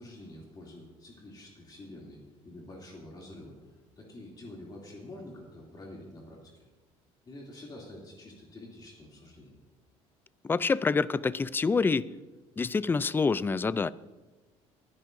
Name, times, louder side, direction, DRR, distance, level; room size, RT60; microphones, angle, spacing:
voice 1, 0.0-3.6 4.0-6.6 7.3-9.5, left 1 dB, 30° left, -2 dB, 2.8 m, -47 dB
voice 2, 10.4-12.1 12.6-13.9, left 4 dB, 15° left, 18 dB, 0.3 m, -27 dB
22.5 x 10.5 x 2.7 m, 1.2 s
cardioid pair, 120°, 13 cm